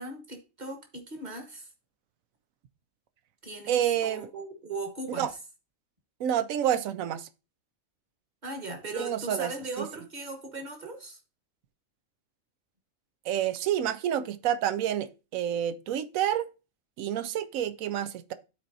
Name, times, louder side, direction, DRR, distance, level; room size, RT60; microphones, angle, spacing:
voice 1, 0.0-1.7 3.4-5.4 8.4-11.2, right 2 dB, 35° right, 1.5 m, -38 dB
voice 2, 3.7-4.3 5.2-5.3 6.2-7.3 9.0-9.5 9.8-9.9 13.2-16.5 17.0-18.3, right 10 dB, 85° right, 1.0 m, -28 dB
12.5 x 4.3 x 2.7 m
omnidirectional pair, 1.4 m